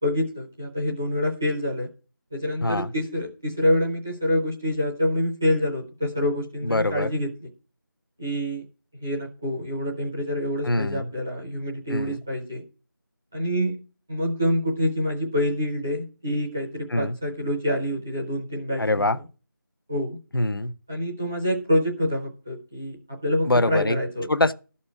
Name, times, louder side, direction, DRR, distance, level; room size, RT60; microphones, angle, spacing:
voice 1, 0.0-1.9 2.3-7.5 8.2-8.6 9.0-12.6 13.3-13.8 14.1-19.0 19.9-20.2 20.9-24.3, left 1 dB, 5° right, 0.6 m, -26 dB
voice 2, 6.6-7.1 10.6-11.1 11.9-12.2 16.9-17.2 18.8-19.2 20.3-20.7 23.4-24.0 24.3-24.5, left 2 dB, 80° left, 0.9 m, -24 dB
13.0 x 4.3 x 8.2 m
figure-of-eight pair, 175°, 12 cm